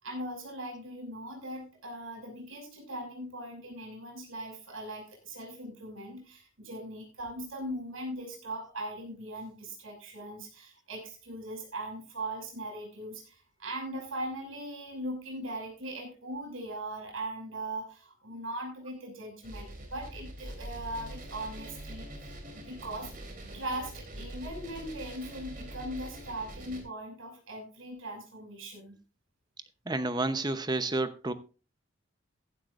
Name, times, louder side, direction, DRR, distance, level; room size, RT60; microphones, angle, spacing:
voice 1, 0.0-22.1 22.5-23.1 23.5-29.0, right 1 dB, 90° right, 6.0 m, -40 dB
sound 1, 19.4-26.8, right 1 dB, 45° right, 3.4 m, -44 dB
voice 2, 29.9-31.3, right 2 dB, 20° right, 0.8 m, -30 dB
15.5 x 12.0 x 2.5 m
head